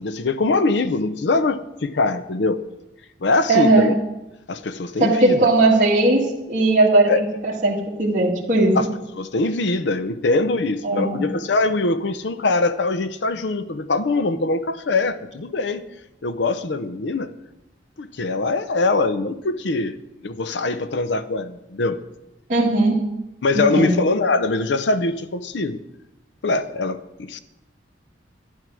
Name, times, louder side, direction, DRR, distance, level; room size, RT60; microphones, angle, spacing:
voice 1, 0.0-2.6 3.2-3.9 4.5-5.5 7.1-7.2 8.8-8.9 9.2-15.8 16.2-17.3 18.0-19.9 20.2-22.0 23.4-25.8 26.4-27.4, left 3 dB, 65° left, 12 dB, 0.6 m, -22 dB
voice 2, 3.5-3.9 5.0-8.8 10.8-11.3 22.5-23.0 23.6-24.0, right 2 dB, 45° right, -6 dB, 1.8 m, -18 dB
12.5 x 10.5 x 6.2 m, 0.94 s
head